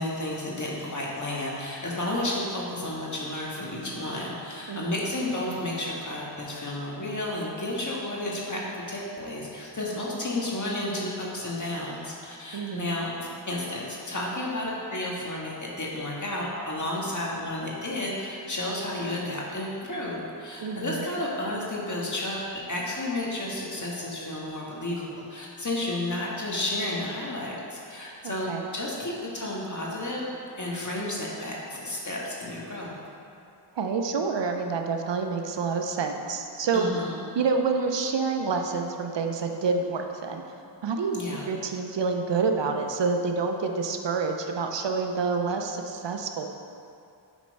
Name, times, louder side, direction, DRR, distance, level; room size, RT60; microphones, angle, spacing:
voice 1, 0.0-30.3 30.6-33.0 36.7-37.2 41.1-41.5, left 1 dB, 40° left, -4 dB, 1.7 m, -32 dB
voice 2, 12.5-12.9 20.6-21.1 28.2-28.7 33.7-36.9 37.4-40.4 40.8-41.2 41.5-46.5, right 4 dB, 65° right, 4 dB, 0.7 m, -28 dB
8.1 x 4.4 x 5.3 m, 2.6 s
wide cardioid pair, 65°, 46 cm